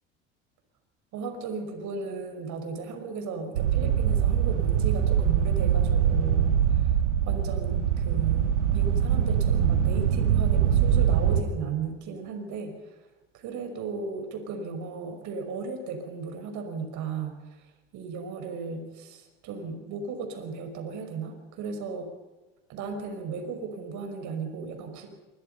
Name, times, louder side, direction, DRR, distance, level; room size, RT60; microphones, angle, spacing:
voice 1, 1.1-6.9 7.3-13.0 13.3-17.6 17.9-22.1 22.7-25.1, right 5 dB, 55° right, 5 dB, 6.0 m, -35 dB
sound 1, 3.5-11.4, right 9 dB, 85° right, 2.3 m, -23 dB
26.5 x 23.0 x 5.7 m, 1.1 s
hypercardioid pair, 85°, 35 cm